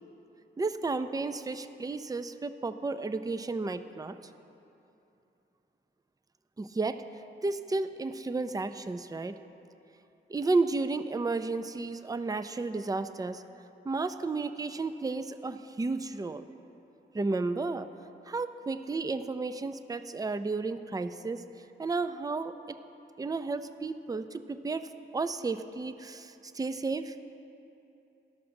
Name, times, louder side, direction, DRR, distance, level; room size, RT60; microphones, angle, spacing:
voice 1, 0.6-4.2 6.6-7.0 7.4-9.3 10.3-13.4 13.8-16.4 17.1-17.9 18.3-21.4 21.8-22.8 23.2-27.2, right 3 dB, 15° right, 11 dB, 0.4 m, -32 dB
12.5 x 5.9 x 6.5 m, 2.9 s
cardioid pair, 55°, 21 cm